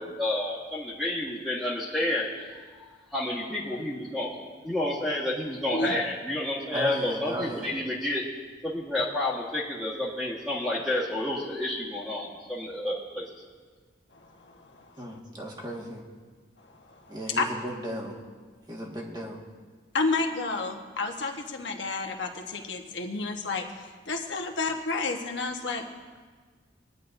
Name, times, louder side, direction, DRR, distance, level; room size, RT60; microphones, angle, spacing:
voice 1, 0.0-4.3 4.6-8.2 8.6-13.3, left 1 dB, ahead, -6 dB, 1.6 m, -30 dB
voice 2, 6.7-7.7 15.0-16.0 17.1-18.2 18.7-19.4, equal, 20° right, -1 dB, 1.7 m, -34 dB
voice 3, 14.1-15.2 16.6-17.5 19.9-25.8, left 3 dB, 70° left, 3 dB, 1.3 m, -31 dB
21.5 x 10.5 x 2.7 m, 1.5 s
head